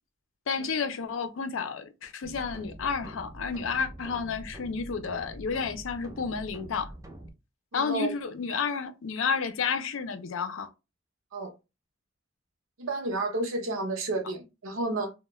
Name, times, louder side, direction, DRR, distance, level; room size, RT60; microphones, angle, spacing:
voice 1, 0.5-6.9 7.7-10.7, left 5 dB, 75° left, 0.5 m, -31 dB
sound 1, 2.2-7.3, right 1 dB, 15° right, 0.4 m, -45 dB
voice 2, 7.7-8.1 11.3-11.5 12.8-15.1, right 2 dB, 85° right, 0.7 m, -31 dB
2.2 x 2.1 x 3.0 m
head